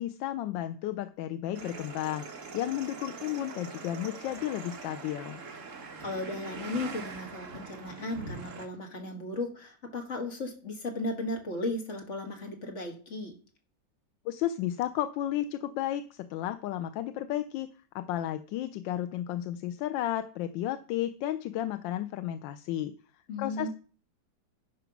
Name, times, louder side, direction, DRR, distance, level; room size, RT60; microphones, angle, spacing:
voice 1, 0.0-5.4 14.2-17.7 17.9-22.9 23.4-23.7, left 12 dB, 90° left, 9 dB, 1.3 m, -33 dB
sound 1, 1.5-8.7, right 4 dB, 45° right, 1.4 m, -43 dB
voice 2, 6.0-13.4 23.3-23.7, left 2 dB, 40° left, 3 dB, 1.7 m, -35 dB
10.0 x 4.6 x 5.9 m, 0.42 s
omnidirectional pair, 2.0 m